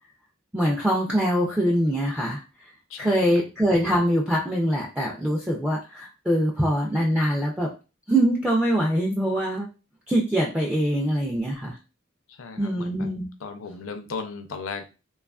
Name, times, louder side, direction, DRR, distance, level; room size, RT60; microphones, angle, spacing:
voice 1, 0.5-2.4 3.0-7.7 8.1-9.7 10.1-11.8 12.6-13.3, equal, 5° right, -3 dB, 0.3 m, -23 dB
voice 2, 2.9-3.4 12.3-13.1 13.4-14.9, left 5 dB, 70° left, 6 dB, 0.5 m, -36 dB
2.8 x 2.3 x 2.3 m, 0.31 s
head